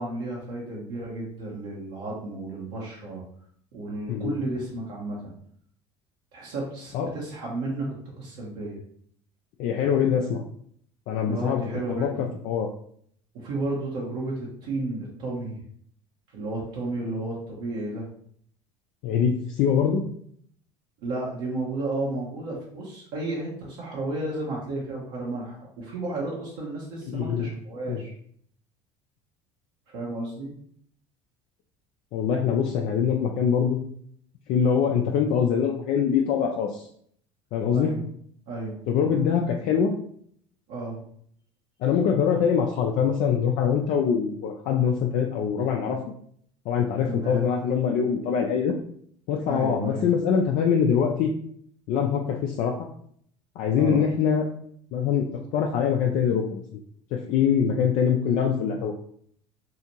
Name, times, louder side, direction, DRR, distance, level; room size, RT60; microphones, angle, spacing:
voice 1, 0.0-3.2 3.7-5.3 6.3-8.8 11.3-12.3 13.3-15.6 16.3-18.1 21.0-28.1 29.9-30.5 37.7-38.0 38.5-38.8 40.7-41.0 47.0-47.4 49.5-50.1 53.8-54.0, right 2 dB, 70° right, -4 dB, 0.8 m, -32 dB
voice 2, 9.6-10.4 11.1-11.6 12.0-12.1 12.4-12.7 19.0-20.0 27.1-27.5 27.9-28.0 32.1-33.8 34.5-36.9 37.5-37.9 38.9-39.9 41.8-46.0 46.7-48.8 49.3-51.3 51.9-52.7 53.6-54.4 54.9-55.3 55.5-56.8 57.1-58.9, left 7 dB, 55° left, 1 dB, 0.4 m, -23 dB
2.8 x 2.4 x 2.8 m, 0.64 s
hypercardioid pair, 70°, 16 cm